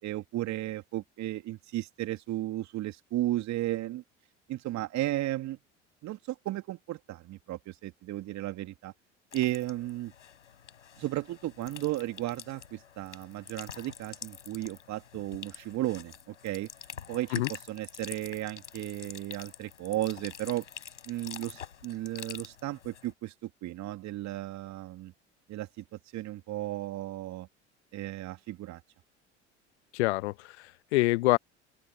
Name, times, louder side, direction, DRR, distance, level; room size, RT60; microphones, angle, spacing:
voice 1, 0.0-4.0 4.5-5.6 6.0-8.9 9.3-10.1 11.0-16.7 17.1-20.6 21.1-25.1 25.5-27.5 27.9-28.8, right 15 dB, 50° right, 2.7 m, -34 dB
sound 1, 9.3-23.1, left 8 dB, 85° left, 5.9 m, -47 dB
voice 2, 29.9-31.4, left 21 dB, 70° left, 1.0 m, -26 dB
open air
figure-of-eight pair, 65°, 35 cm